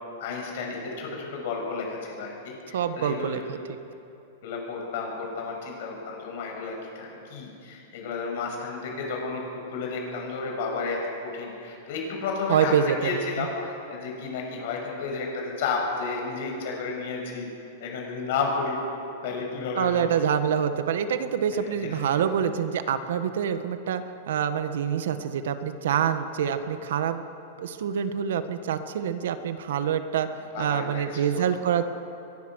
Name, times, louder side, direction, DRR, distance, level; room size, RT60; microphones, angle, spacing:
voice 1, 0.2-3.4 4.4-9.4 9.7-17.5 17.8-18.8 19.2-20.2 21.5-22.0 30.5-31.5, left 4 dB, 55° left, 0 dB, 6.6 m, -32 dB
voice 2, 2.7-3.6 12.5-13.5 19.8-27.2 27.6-30.3 30.6-31.8, right 8 dB, 75° right, 10 dB, 1.4 m, -26 dB
23.0 x 20.5 x 6.4 m, 2.8 s
supercardioid pair, 165°, 0 cm